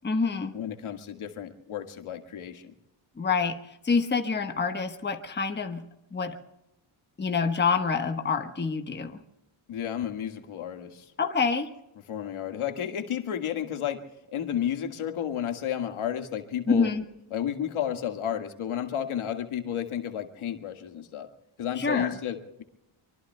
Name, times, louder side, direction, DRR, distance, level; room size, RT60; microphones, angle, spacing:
voice 1, 0.0-0.5 3.2-5.8 6.1-6.4 7.2-9.2 11.2-11.7 16.7-17.0 21.8-22.2, left 5 dB, 20° left, 5 dB, 1.2 m, -27 dB
voice 2, 0.5-2.7 9.7-11.1 12.1-14.0 14.3-16.9 17.3-21.3 21.6-22.6, left 9 dB, 75° left, 5 dB, 1.8 m, -32 dB
24.5 x 24.5 x 2.2 m, 0.88 s
cardioid pair, 130°, 50 cm